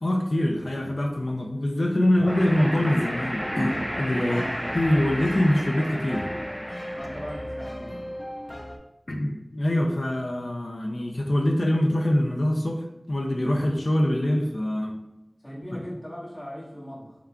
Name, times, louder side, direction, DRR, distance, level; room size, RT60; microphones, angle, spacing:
voice 1, 0.0-4.4 4.7-6.3 9.1-14.9, left 1 dB, 80° left, 1 dB, 0.5 m, -24 dB
sound 1, 2.2-7.6, equal, 5° left, 0.9 m, -33 dB
sound 2, 3.4-8.8, equal, 35° left, 0.6 m, -37 dB
voice 2, 4.2-4.6 6.9-8.0 15.4-17.2, equal, 55° left, -7 dB, 1.3 m, -38 dB
4.5 x 3.6 x 2.3 m, 0.89 s
wide cardioid pair, 40°, 0 cm